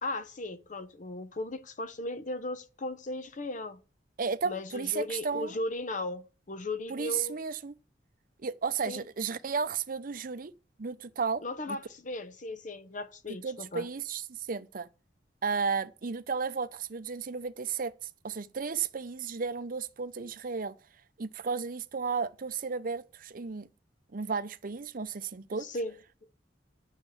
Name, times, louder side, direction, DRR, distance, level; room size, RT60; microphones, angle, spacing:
voice 1, 0.0-3.8 4.4-7.4 8.9-9.0 11.4-13.9 25.6-25.9, left 2 dB, 45° left, 0.8 m, -37 dB
voice 2, 4.2-5.6 6.9-7.8 8.4-10.5 10.8-11.8 13.4-14.9 15.4-17.9 18.2-20.7 21.2-23.7 24.1-25.7, right 5 dB, 50° right, 0.6 m, -33 dB
9.0 x 6.7 x 7.2 m
head